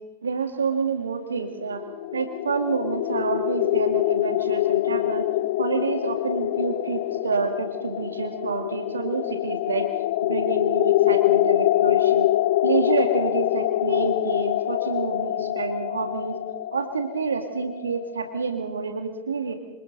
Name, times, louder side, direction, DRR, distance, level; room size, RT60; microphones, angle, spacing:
voice 1, 0.2-1.8 2.1-5.3 5.6-9.8 10.3-12.3 12.6-16.4 16.7-19.5, right 5 dB, 70° right, 6 dB, 1.9 m, -28 dB
sound 1, 1.5-18.3, left 15 dB, 55° left, 0.6 m, -25 dB
26.5 x 25.0 x 3.9 m, 1.1 s
figure-of-eight pair, 90°, 0 cm